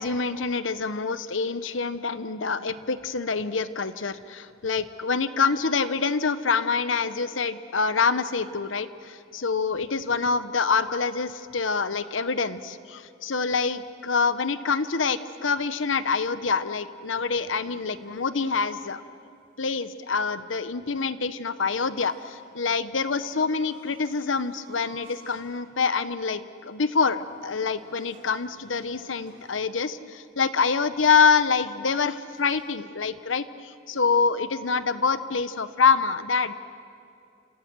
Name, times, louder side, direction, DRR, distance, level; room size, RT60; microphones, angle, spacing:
voice 1, 0.0-19.0 19.6-36.5, left 5 dB, 90° left, 13 dB, 1.0 m, -26 dB
sound 1, 16.1-18.4 21.7-25.5 25.9-26.1 27.1-29.7 32.3-32.6, right 2 dB, 50° right, 7.3 m, -54 dB
27.5 x 27.5 x 6.2 m, 2.6 s
head